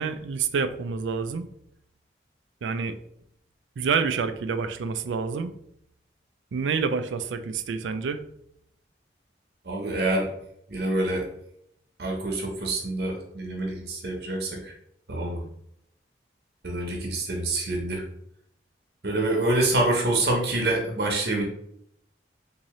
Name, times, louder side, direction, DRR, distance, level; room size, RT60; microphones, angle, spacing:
voice 1, 0.0-1.5 2.6-3.0 3.8-5.5 6.5-8.2, right 5 dB, 90° right, 9 dB, 0.4 m, -28 dB
voice 2, 9.6-10.3 10.7-11.3 12.0-14.7 15.1-15.4 16.6-18.0 19.0-21.4, right 2 dB, 60° right, 0 dB, 0.9 m, -26 dB
3.7 x 2.7 x 3.1 m, 0.72 s
head